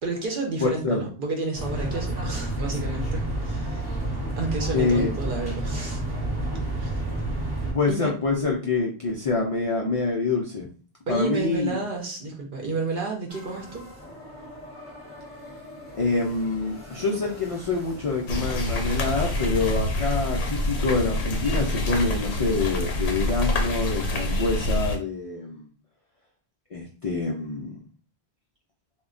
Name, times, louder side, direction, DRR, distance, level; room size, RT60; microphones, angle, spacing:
voice 1, 0.0-3.8 4.4-6.1 6.8-7.0 7.9-8.1 11.1-13.9, right 3 dB, 55° right, 1 dB, 0.8 m, -31 dB
voice 2, 0.6-1.0 4.7-5.1 7.7-10.7 11.1-11.8 16.0-25.7 26.7-27.8, left 3 dB, 60° left, -1 dB, 0.3 m, -26 dB
sound 1, 1.6-7.7, right 1 dB, 25° right, 0.8 m, -29 dB
sound 2, 13.3-19.3, left 1 dB, 15° left, 0.7 m, -44 dB
sound 3, 18.3-25.0, left 1 dB, 75° left, 0.9 m, -26 dB
2.1 x 2.1 x 3.6 m, 0.39 s
omnidirectional pair, 1.1 m